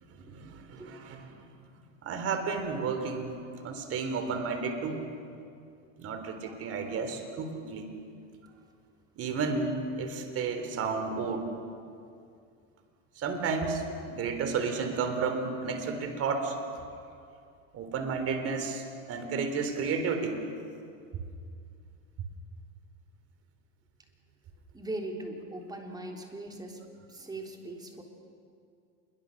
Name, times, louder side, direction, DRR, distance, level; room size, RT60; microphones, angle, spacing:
voice 1, 0.2-1.3 2.0-3.3 3.6-5.1 6.0-7.9 9.2-11.5 13.2-13.8 14.1-16.6 17.7-18.8 19.1-20.4, right 5 dB, 40° right, 6 dB, 3.8 m, -32 dB
voice 2, 24.7-26.8 27.1-28.0, right 1 dB, 10° right, 1 dB, 3.6 m, -40 dB
27.5 x 22.5 x 6.6 m, 2.4 s
supercardioid pair, 125°, 37 cm